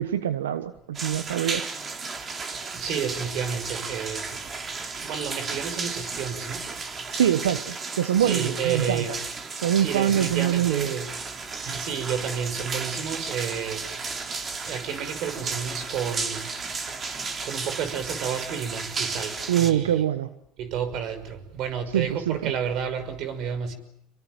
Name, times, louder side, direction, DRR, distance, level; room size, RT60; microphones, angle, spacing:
voice 1, 0.0-1.7 7.1-9.1 9.5-10.9 19.5-20.3 21.9-22.5, right 10 dB, 90° right, 12 dB, 1.2 m, -24 dB
sound 1, 0.9-19.7, right 4 dB, 30° right, 3.6 m, -34 dB
voice 2, 2.7-4.4 5.0-6.7 8.2-9.2 9.7-11.1 11.6-16.5 17.4-20.0 20.6-23.7, right 7 dB, 55° right, 11 dB, 5.7 m, -31 dB
27.0 x 23.5 x 9.2 m, 0.73 s
hypercardioid pair, 85°, 0 cm